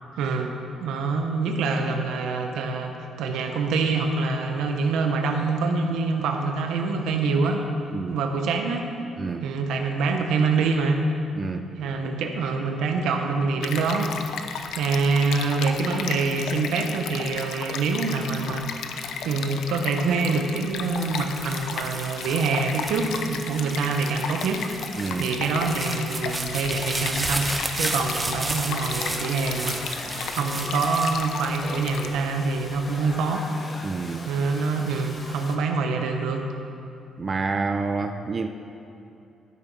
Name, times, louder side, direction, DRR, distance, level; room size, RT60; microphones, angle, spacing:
voice 1, 0.2-0.5 0.8-7.6 8.1-8.9 9.4-11.0 11.7-14.1 14.7-18.9 19.2-24.6 25.2-27.5 27.8-33.5 34.3-36.4, right 4 dB, 85° right, 4 dB, 1.0 m, -25 dB
voice 2, 11.4-11.7 25.0-25.3 33.8-34.3 37.2-38.5, right 4 dB, 35° right, 6 dB, 0.5 m, -28 dB
Stream, 13.6-32.1, left 6 dB, 80° left, 0.6 m, -34 dB
sound 1, 20.7-32.1 32.6-33.2, right 2 dB, 20° right, 1.0 m, -33 dB
Domestic sounds home sounds, 28.6-35.6, left 2 dB, 40° left, 1.3 m, -41 dB
12.0 x 6.1 x 5.4 m, 2.7 s
cardioid pair, 90°, 0 cm